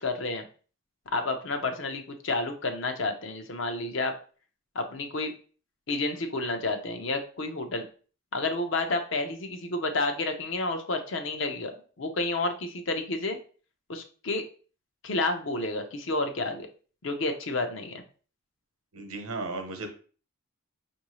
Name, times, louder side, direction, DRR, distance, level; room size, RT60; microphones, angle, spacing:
voice 1, 0.0-0.4 1.1-4.1 4.7-5.3 5.9-7.9 8.3-13.4 13.9-14.4 15.0-16.7 17.0-18.0, left 2 dB, 60° left, 6 dB, 0.6 m, -30 dB
voice 2, 18.9-19.9, right 3 dB, 80° right, 5 dB, 0.9 m, -35 dB
5.4 x 2.7 x 3.0 m, 0.39 s
head